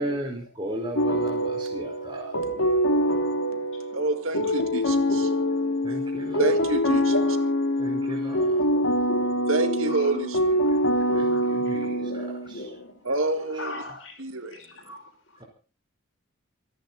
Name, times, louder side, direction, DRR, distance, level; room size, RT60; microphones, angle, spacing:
voice 1, 0.0-2.3 5.8-6.4 7.8-8.6 11.1-12.2, right 1 dB, 20° right, 4.7 m, -34 dB
sound 1, 1.0-12.7, equal, 85° left, 2.6 m, -25 dB
voice 2, 2.4-4.1 6.5-7.5 8.3-9.4 9.9-10.2 10.9-13.0 13.6-14.2 14.5-15.4, left 2 dB, 65° left, 5.8 m, -41 dB
voice 3, 3.9-5.9 6.4-7.1 9.5-10.8 13.0-13.8 14.2-14.6, right 2 dB, 80° right, 1.9 m, -28 dB
28.0 x 10.5 x 4.1 m
head